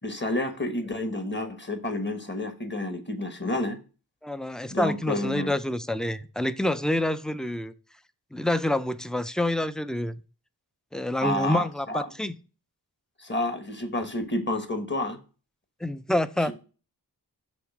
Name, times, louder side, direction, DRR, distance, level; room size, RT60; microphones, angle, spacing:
voice 1, 0.0-3.8 4.7-5.5 11.2-12.0 13.2-15.2, left 2 dB, 30° left, 1.1 m, -30 dB
voice 2, 4.2-7.7 8.3-10.2 10.9-12.4 15.8-16.5, left 1 dB, ahead, 0.4 m, -27 dB
6.2 x 3.2 x 5.8 m
wide cardioid pair, 55°, 40 cm